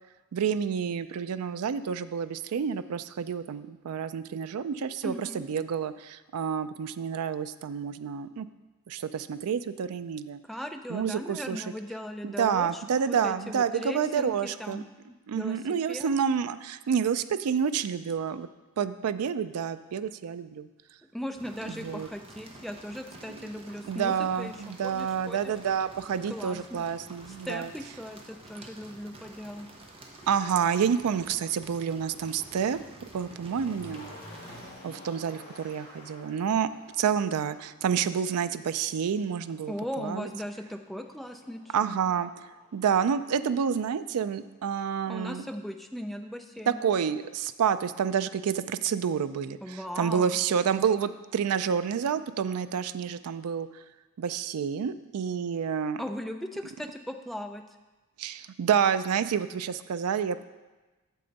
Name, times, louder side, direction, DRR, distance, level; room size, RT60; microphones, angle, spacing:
voice 1, 0.3-8.5 8.9-10.4 10.9-11.6 12.2-14.8 15.3-18.5 18.8-20.7 21.7-22.1 23.9-27.7 30.3-32.8 33.1-34.2 34.8-36.7 37.0-40.3 41.7-42.3 42.7-45.4 46.7-53.7 54.2-56.0 58.2-60.4, right 7 dB, 80° right, 13 dB, 0.4 m, -29 dB
voice 2, 5.0-5.4 10.4-14.8 15.3-15.6 15.9-16.1 21.1-24.5 24.8-25.5 26.3-26.8 27.3-29.7 39.7-42.0 45.1-46.9 49.6-50.4 56.0-57.6, equal, ahead, 5 dB, 0.4 m, -38 dB
sound 1, 21.3-34.7, right 2 dB, 25° right, 0.8 m, -50 dB
Motor vehicle (road), 30.2-30.3 31.0-44.0 44.3-44.4, left 1 dB, 40° left, 2.6 m, -52 dB
8.4 x 6.8 x 4.0 m, 1.2 s
head